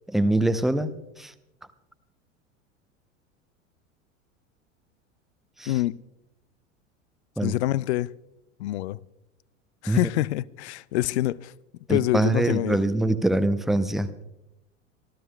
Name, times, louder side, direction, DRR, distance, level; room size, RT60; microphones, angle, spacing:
voice 1, 0.1-1.3 5.6-5.7 7.4-7.5 9.9-10.0 11.9-14.1, right 1 dB, ahead, 0.6 m, -24 dB
voice 2, 7.4-8.1 8.6-9.0 9.8-11.5 11.9-12.8, left 16 dB, 60° left, 0.5 m, -26 dB
27.0 x 14.0 x 2.2 m
figure-of-eight pair, 80°, 39 cm